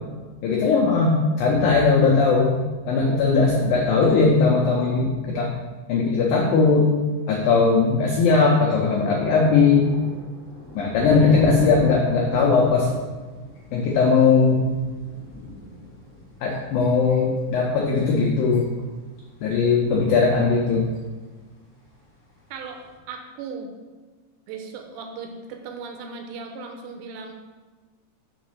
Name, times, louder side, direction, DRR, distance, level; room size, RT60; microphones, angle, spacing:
voice 1, 0.4-2.6 2.9-5.5 5.9-6.9 7.3-10.0 10.8-12.9 13.7-14.6 16.4-18.6 19.4-20.8, left 4 dB, 85° left, -2 dB, 2.0 m, -19 dB
sound 1, 7.6-7.7 8.3-17.9 18.2-19.6 19.8-20.0 20.3-20.4 21.4-21.6 22.7-22.9, left 2 dB, 45° left, 0.9 m, -35 dB
voice 2, 23.1-23.7 24.5-27.3, right 5 dB, 85° right, 3 dB, 2.9 m, -37 dB
6.5 x 4.1 x 6.3 m, 1.3 s
omnidirectional pair, 5.1 m